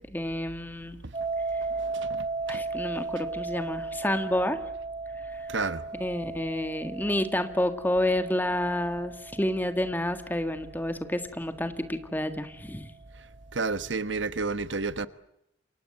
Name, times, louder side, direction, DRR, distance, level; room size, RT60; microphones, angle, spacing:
voice 1, 0.1-1.0 2.5-4.6 5.3-5.5 5.9-12.9, left 1 dB, 10° left, 1.8 m, -29 dB
sound 1, 1.1-12.1, right 3 dB, 30° right, 5.2 m, -36 dB
voice 2, 1.9-2.6 5.5-5.8 13.5-15.1, right 4 dB, 80° right, 1.2 m, -31 dB
28.5 x 24.0 x 7.8 m
head